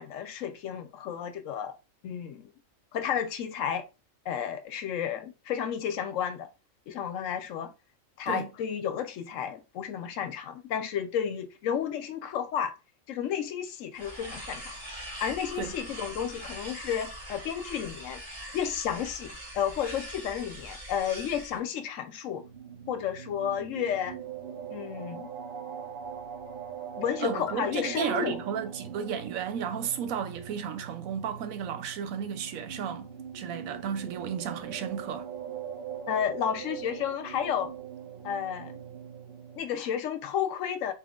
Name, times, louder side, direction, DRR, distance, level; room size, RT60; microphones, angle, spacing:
voice 1, 0.0-1.7 2.0-2.5 2.9-3.8 4.3-6.5 6.9-7.7 8.2-12.7 13.1-14.7 15.2-18.2 18.5-22.4 22.9-24.2 24.7-25.3 27.0-28.4 36.1-37.7 38.2-38.7 39.6-40.9, left 8 dB, 75° left, 0.9 m, -32 dB
sound 1, 13.9-21.6, equal, 25° right, 1.6 m, -42 dB
sound 2, 22.2-39.6, right 8 dB, 50° right, 0.7 m, -42 dB
voice 2, 27.2-35.3, right 8 dB, 80° right, 1.1 m, -33 dB
4.0 x 2.4 x 3.6 m
omnidirectional pair, 1.4 m